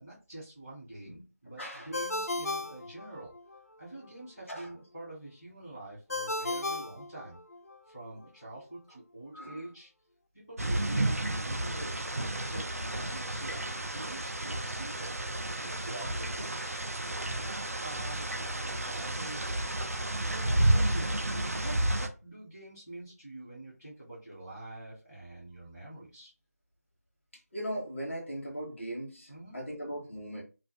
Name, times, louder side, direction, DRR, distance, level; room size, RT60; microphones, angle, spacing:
voice 1, 0.0-3.3 3.8-7.4 7.9-9.9 10.3-12.1 12.4-15.1 15.6-16.8 17.3-19.5 20.3-26.3 29.3-29.6, right 2 dB, 10° left, 0.7 m, -46 dB
voice 2, 1.6-1.9 4.5-4.7 9.3-9.6 19.9-20.1 27.5-30.4, equal, 50° left, 1.1 m, -39 dB
Ringtone, 1.9-3.6 6.1-7.8, left 2 dB, 65° left, 0.4 m, -35 dB
sound 1, 10.6-22.1, right 1 dB, 60° right, 0.4 m, -31 dB
2.4 x 2.3 x 2.3 m
figure-of-eight pair, 175°, 9 cm